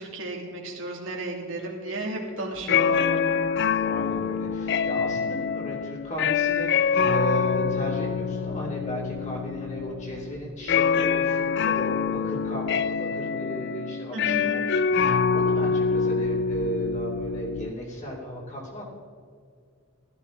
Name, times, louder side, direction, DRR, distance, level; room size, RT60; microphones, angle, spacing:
voice 1, 0.0-3.4 14.1-14.6, right 2 dB, 75° right, -1 dB, 2.6 m, -33 dB
sound 1, 2.6-17.7, left 6 dB, 55° left, 0.4 m, -25 dB
voice 2, 3.8-18.8, right 1 dB, 35° left, -3 dB, 2.8 m, -35 dB
15.5 x 13.0 x 3.9 m, 2.2 s
head